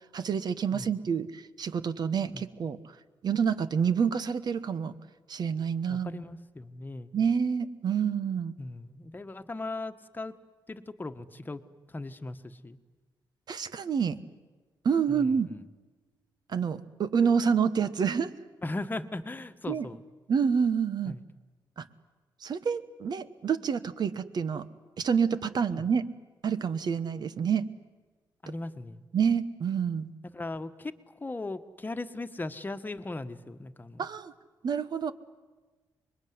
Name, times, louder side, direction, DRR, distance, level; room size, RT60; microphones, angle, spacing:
voice 1, 0.1-2.8 3.2-4.9 5.3-6.2 7.1-8.5 13.5-14.2 14.8-15.5 16.5-18.3 19.7-19.9 20.3-21.2 21.8-21.9 22.4-24.7 25.0-26.1 26.4-27.7 29.1-30.1 34.0-34.3 34.6-35.1, right 6 dB, 60° right, 13 dB, 1.3 m, -28 dB
voice 2, 5.9-7.1 8.6-10.3 10.7-11.6 11.9-12.8 15.1-15.6 18.6-20.0 21.0-21.2 25.7-25.9 28.4-29.0 30.2-34.1, left 2 dB, 25° left, 9 dB, 1.4 m, -38 dB
25.5 x 21.5 x 9.6 m, 1.3 s
cardioid pair, 80°, 8 cm